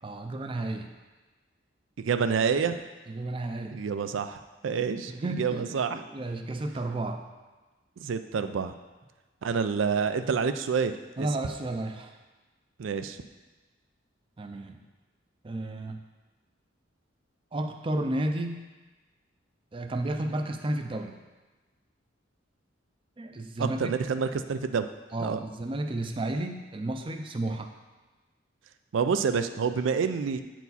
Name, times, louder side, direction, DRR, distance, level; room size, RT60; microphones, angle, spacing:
voice 1, 0.0-0.9 3.1-3.8 4.7-4.8 5.1-7.2 11.2-12.2 14.4-14.8 15.4-16.0 17.5-18.7 19.7-21.2 23.2-23.9 25.1-27.7, right 1 dB, 25° right, 5 dB, 0.5 m, -32 dB
voice 2, 2.0-2.8 3.7-6.0 8.0-8.7 9.4-10.9 11.2-11.3 12.8-13.2 23.6-24.9 25.2-25.4 28.9-30.4, right 6 dB, 85° right, 10 dB, 0.4 m, -28 dB
8.1 x 4.6 x 4.1 m, 1.2 s
head